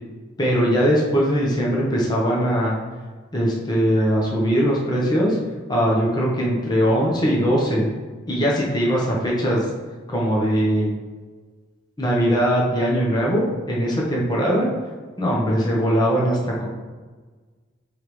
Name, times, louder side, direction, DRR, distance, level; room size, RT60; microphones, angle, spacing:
voice 1, 0.4-2.8 3.3-5.4 5.7-7.9 8.3-9.6 10.1-10.9 12.0-14.7 15.2-16.7, equal, 25° left, -4 dB, 1.0 m, -20 dB
9.2 x 3.4 x 3.2 m, 1.4 s
head